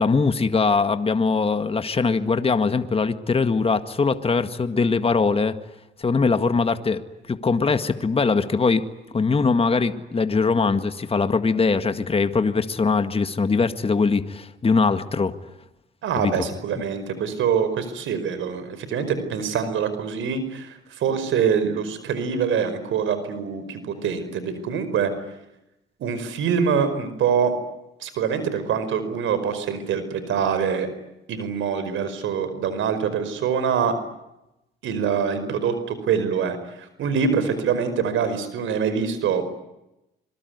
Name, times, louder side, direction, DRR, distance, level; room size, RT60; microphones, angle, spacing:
voice 1, 0.0-5.6 6.0-7.0 7.3-8.8 9.1-15.4 16.2-16.5, left 4 dB, 30° left, 10 dB, 1.9 m, -21 dB
voice 2, 16.0-25.1 26.0-27.5 28.0-30.9 31.3-33.9 34.8-39.4, right 7 dB, 80° right, 11 dB, 5.1 m, -24 dB
25.5 x 23.5 x 9.6 m, 0.91 s
cardioid pair, 90°, 20 cm